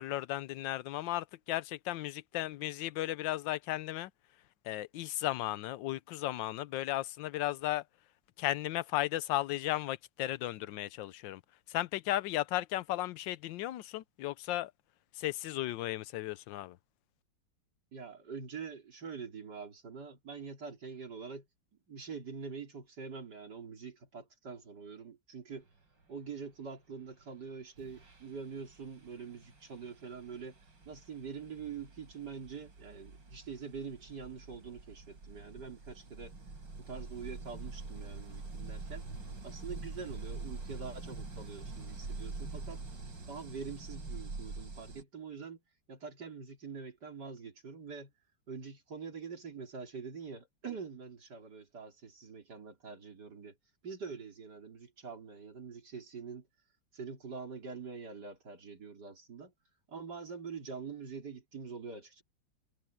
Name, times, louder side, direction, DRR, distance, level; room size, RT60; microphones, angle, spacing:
voice 1, 0.0-4.1 4.6-7.8 8.4-11.4 11.7-14.7 15.1-16.8, left 15 dB, 80° left, 1.4 m, -35 dB
voice 2, 17.9-21.5 21.9-25.7 26.1-30.6 30.9-36.3 36.8-39.1 39.4-42.8 43.3-45.6 45.9-48.1 48.5-53.5 53.8-56.5 56.9-59.5 59.9-62.2, right 5 dB, 60° right, 4.0 m, -45 dB
sound 1, 27.2-27.4 27.8-45.0, right 3 dB, 75° right, 4.8 m, -45 dB
omnidirectional pair, 2.0 m